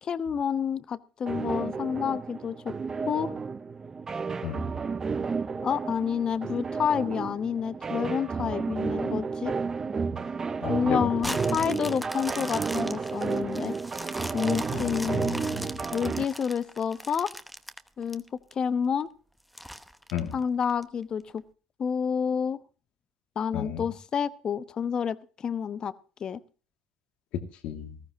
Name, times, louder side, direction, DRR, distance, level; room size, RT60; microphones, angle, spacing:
voice 1, 0.0-2.7 3.1-3.3 5.6-9.5 10.7-13.8 14.3-15.2 15.9-17.3 18.0-18.2 18.6-19.1 20.3-21.4 21.8-22.6 23.4-25.9 26.2-26.4, left 7 dB, 40° left, 14 dB, 1.0 m, -29 dB
sound 1, 1.3-16.2, right 5 dB, 25° right, 0.8 m, -32 dB
voice 2, 10.6-11.6 14.7-15.6 20.1-20.3 23.5-23.9 27.3-28.0, left 9 dB, 70° left, 7 dB, 2.3 m, -34 dB
sound 2, 11.2-18.5 19.0-19.1 19.5-20.8 21.4-21.5, equal, ahead, 1.0 m, -39 dB
19.0 x 14.5 x 2.8 m, 0.38 s
cardioid pair, 110°, 2 cm